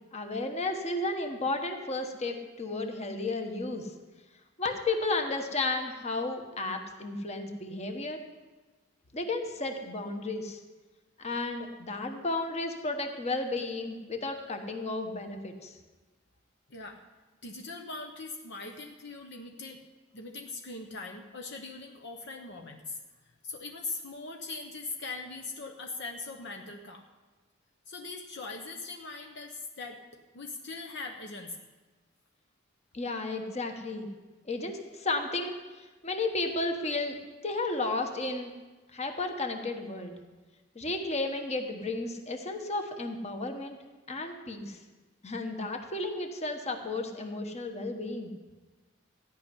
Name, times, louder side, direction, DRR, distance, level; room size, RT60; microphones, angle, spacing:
voice 1, 0.1-3.9 4.6-8.2 9.1-10.6 11.2-15.8 32.9-34.1 34.4-37.2 37.4-38.5 38.9-40.1 40.7-43.8 44.1-44.8 45.2-48.3, left 2 dB, 35° left, 4 dB, 1.3 m, -33 dB
voice 2, 16.7-17.0 17.4-19.8 20.1-23.0 23.4-27.0 27.9-31.6, left 3 dB, 60° left, 3 dB, 0.9 m, -41 dB
14.0 x 5.5 x 9.7 m, 1.3 s
head